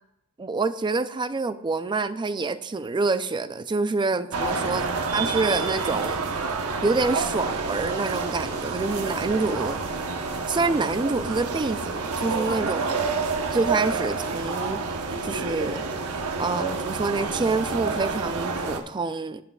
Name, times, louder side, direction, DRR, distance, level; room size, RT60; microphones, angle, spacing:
voice 1, 0.4-4.8 5.1-6.2 6.8-9.8 10.5-13.1 13.5-15.8 16.4-19.4, right 3 dB, 20° right, 12 dB, 0.4 m, -27 dB
sound 1, 4.3-18.8, right 4 dB, 90° right, 1.0 m, -28 dB
17.5 x 6.7 x 2.3 m, 0.83 s
head